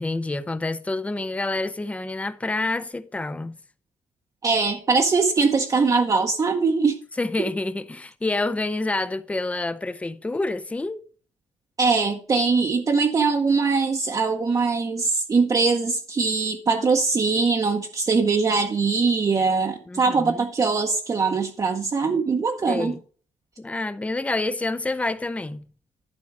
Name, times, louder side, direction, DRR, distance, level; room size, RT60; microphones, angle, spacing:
voice 1, 0.0-3.6 7.2-11.0 19.9-20.4 22.7-23.0 23.6-25.6, left 2 dB, 10° left, 0.5 m, -28 dB
voice 2, 4.4-7.0 11.8-23.0, right 4 dB, 30° right, 0.8 m, -22 dB
11.5 x 4.6 x 6.1 m
cardioid pair, 150°, 12 cm